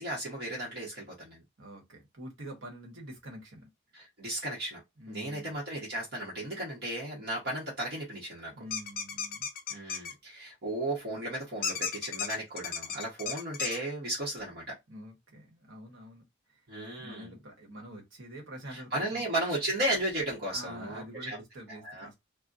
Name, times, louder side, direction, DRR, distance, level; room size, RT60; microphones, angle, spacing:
voice 1, 0.0-1.4 3.9-4.8 5.1-8.6 9.7-14.7 16.7-17.4 18.7-21.4 21.7-22.1, right 1 dB, 55° right, 0.9 m, -35 dB
voice 2, 1.6-3.7 5.0-5.6 8.5-9.5 14.9-16.3 17.0-19.3 20.5-22.1, equal, 75° right, 1.2 m, -46 dB
sound 1, 8.7-10.1 11.6-13.8, left 7 dB, 45° left, 0.4 m, -34 dB
2.4 x 2.1 x 3.8 m
head